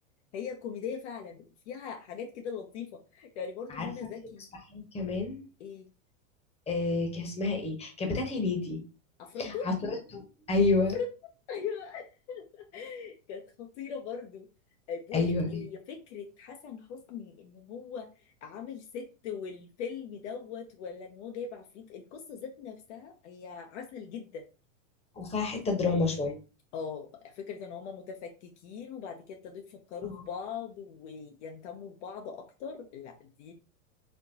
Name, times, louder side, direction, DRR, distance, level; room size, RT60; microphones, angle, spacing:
voice 1, 0.3-4.5 5.6-5.9 9.2-9.7 10.9-11.1 11.5-14.5 14.9-24.4 26.7-33.5, left 6 dB, 55° left, 3 dB, 0.8 m, -40 dB
voice 2, 4.7-5.4 6.7-8.8 9.4-9.7 10.1-11.0 15.1-15.6 25.2-26.4, left 3 dB, 15° left, 3 dB, 1.0 m, -29 dB
4.3 x 2.8 x 2.8 m, 0.34 s
hypercardioid pair, 125°, 41 cm